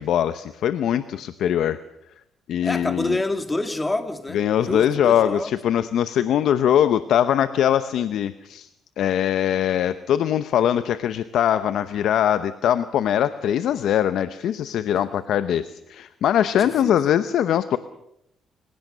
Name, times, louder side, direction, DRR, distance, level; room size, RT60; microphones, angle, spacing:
voice 1, 0.0-1.8 2.5-3.2 4.3-8.7 9.0-17.8, left 10 dB, 75° left, 0.8 m, -22 dB
voice 2, 2.6-5.6 14.9-15.1 16.5-17.0, left 2 dB, 15° left, 2.3 m, -28 dB
27.0 x 17.0 x 6.7 m
cardioid pair, 90°, 0 cm